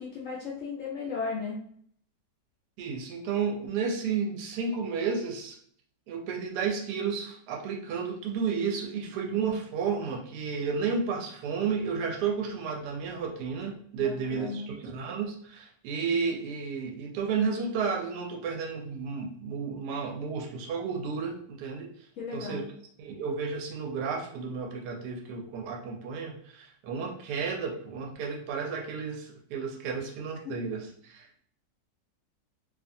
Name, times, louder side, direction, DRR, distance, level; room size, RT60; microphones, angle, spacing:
voice 1, 0.0-1.6 14.0-14.7 22.2-22.6 30.4-30.6, left 5 dB, 75° left, -3 dB, 0.7 m, -35 dB
voice 2, 2.8-5.6 6.1-22.1 22.3-22.6 23.0-31.4, right 5 dB, 75° right, 1 dB, 1.1 m, -32 dB
2.7 x 2.4 x 2.6 m, 0.62 s
omnidirectional pair, 1.9 m